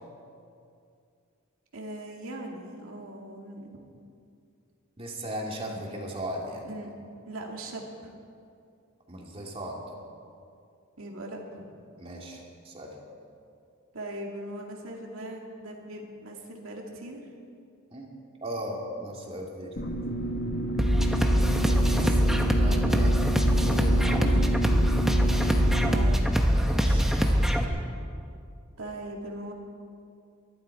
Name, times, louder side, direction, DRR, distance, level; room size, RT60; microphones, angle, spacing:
voice 1, 1.7-3.7 6.6-6.9 7.3-8.1 11.0-11.7 13.9-17.2 25.8-26.2 28.8-29.5, right 1 dB, 80° right, 0 dB, 2.2 m, -39 dB
voice 2, 5.0-6.7 9.1-9.8 12.0-12.9 17.9-18.1 18.4-19.8 21.7-23.2 23.6-24.5 26.6-27.1, equal, 30° right, -1 dB, 2.5 m, -37 dB
sound 1, 19.8-26.1, right 1 dB, 50° left, 1.1 m, -31 dB
sound 2, 20.8-27.6, equal, ahead, 1.0 m, -23 dB
23.0 x 11.5 x 4.8 m, 2.4 s
head